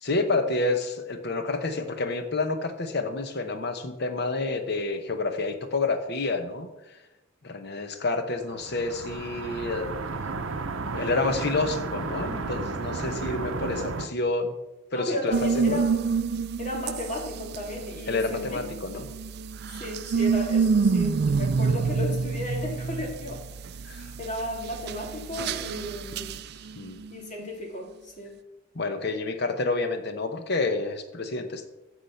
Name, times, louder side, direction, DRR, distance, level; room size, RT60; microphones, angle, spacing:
voice 1, 0.0-7.0 7.4-10.4 10.9-14.5 14.9-15.8 18.1-19.1 23.8-24.1 26.8-27.0 28.7-31.7, left 3 dB, 55° left, 7 dB, 1.0 m, -29 dB
sound 1, 8.4-14.1, right 3 dB, 80° right, 0.8 m, -33 dB
voice 2, 14.9-15.9 16.6-18.6 18.9-19.0 19.7-23.4 23.7-26.4 27.1-28.3, left 1 dB, 40° left, 1 dB, 2.4 m, -34 dB
sound 2, 15.3-27.1, right 5 dB, 55° right, 0.4 m, -28 dB
14.5 x 4.9 x 5.7 m, 0.99 s
head